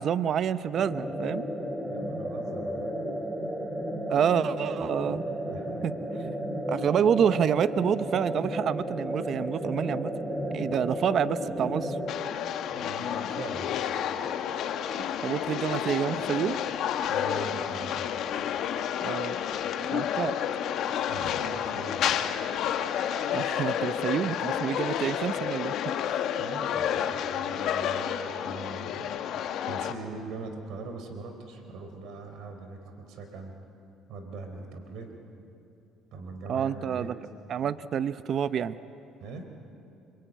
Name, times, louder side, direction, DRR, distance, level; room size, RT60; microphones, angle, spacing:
voice 1, 0.0-1.4 4.1-5.2 5.8-5.9 6.7-10.1 10.5-12.0 15.2-16.6 19.0-19.4 19.9-20.4 23.3-25.7 26.1-26.2 36.5-37.1 37.5-38.8, right 8 dB, 55° right, 14 dB, 0.8 m, -28 dB
sound 1, 0.7-12.1, equal, 10° right, 2.7 m, -33 dB
voice 2, 1.8-3.0 4.9-5.2 5.5-5.9 12.7-13.7 17.1-18.1 21.1-22.1 26.2-29.2 29.7-33.5 34.1-35.1 36.1-37.1 39.2-39.5, right 3 dB, 70° right, 6 dB, 3.8 m, -42 dB
sound 2, 12.1-29.9, left 9 dB, 70° left, 1.4 m, -30 dB
25.5 x 24.0 x 9.2 m, 2.8 s
supercardioid pair, 75°, 0 cm